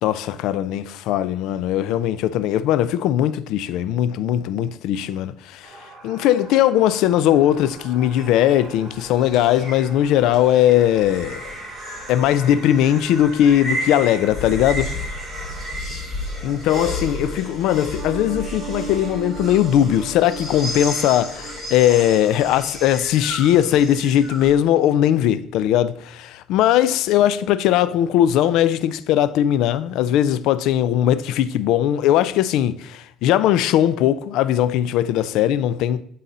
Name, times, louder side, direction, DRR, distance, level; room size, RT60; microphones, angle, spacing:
voice 1, 0.0-5.8 6.0-11.5 12.1-14.9 16.4-36.0, left 11 dB, 75° left, 0.4 m, -19 dB
sound 1, 5.6-15.7, right 3 dB, 40° right, 2.3 m, -43 dB
sound 2, 7.6-24.5, left 1 dB, 10° left, 3.2 m, -33 dB
sound 3, 17.9-22.2 22.5-22.6, right 6 dB, 75° right, 1.5 m, -36 dB
11.0 x 4.0 x 4.1 m
cardioid pair, 160°, 0 cm